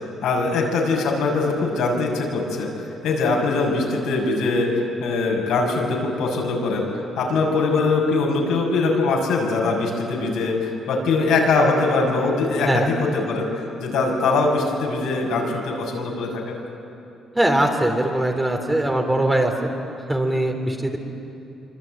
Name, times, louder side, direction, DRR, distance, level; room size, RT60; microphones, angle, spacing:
voice 1, 0.2-2.7 3.0-16.5, left 3 dB, 85° left, -1 dB, 6.5 m, -22 dB
voice 2, 17.3-19.7 20.1-21.0, right 1 dB, 10° right, 2 dB, 3.9 m, -21 dB
25.5 x 25.0 x 9.2 m, 2.7 s
cardioid pair, 90°, 0 cm